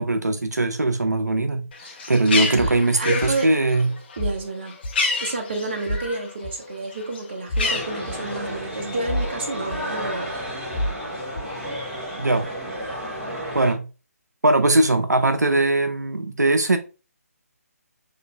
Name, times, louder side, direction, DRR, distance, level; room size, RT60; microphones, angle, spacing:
voice 1, 0.0-3.9 12.2-12.5 13.5-13.8 14.4-16.8, right 2 dB, 90° right, 0.5 m, -20 dB
Bird, 1.7-6.3 6.6-8.6, left 4 dB, 40° left, 0.9 m, -29 dB
voice 2, 2.3-3.5 4.2-4.7 5.2-10.4, right 2 dB, 40° right, 0.9 m, -30 dB
sound 1, 2.6-2.8 3.2-3.3 4.2-4.4 4.8-5.0 5.9-6.1 6.4-6.5 7.5-7.7 8.1-8.2 9.1-9.3 9.7-9.8 10.7-11.0 11.3-11.5, equal, 60° left, 1.2 m, -27 dB
sound 2, 7.6-13.7, equal, 5° right, 0.8 m, -32 dB
6.3 x 2.5 x 2.2 m
figure-of-eight pair, 150°, 9 cm